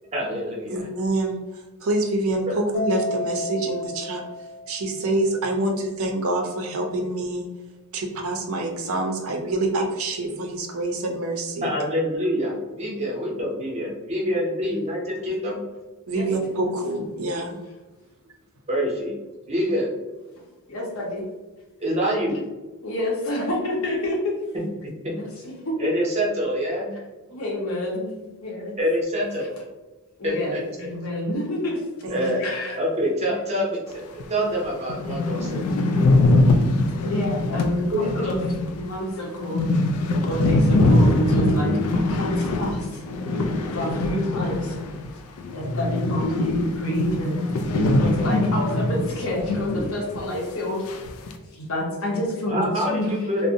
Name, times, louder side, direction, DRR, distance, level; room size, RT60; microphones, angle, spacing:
voice 1, 0.1-0.8 2.5-2.6 11.6-15.6 18.7-19.2 19.5-19.9 21.8-22.4 24.8-25.1 25.8-26.9 28.8-29.5 30.2-30.6 32.1-32.4 32.8-35.6 37.9-38.1 52.5-53.5, equal, 30° right, -2 dB, 0.6 m, -26 dB
voice 2, 0.7-1.4 1.8-4.2 4.7-7.5 7.9-11.7 16.1-17.6 32.0-32.3, right 2 dB, 75° right, 3 dB, 0.5 m, -26 dB
Mallet percussion, 2.7-5.2, left 1 dB, 20° left, 0.6 m, -31 dB
voice 3, 16.1-16.7 20.7-21.3 22.8-24.4 25.1-25.9 27.3-28.8 30.2-31.8 32.4-32.8 37.0-38.4 38.8-39.6 40.2-43.0 43.7-44.8 45.5-47.4 47.9-50.9 51.5-53.1, left 1 dB, 70° left, -2 dB, 0.7 m, -28 dB
sound 1, 34.2-34.3 34.6-34.7 34.9-45.1 45.4-49.9 50.1-50.2 50.9-51.3, left 2 dB, 85° left, 0.3 m, -22 dB
2.5 x 2.0 x 2.7 m, 1.2 s
head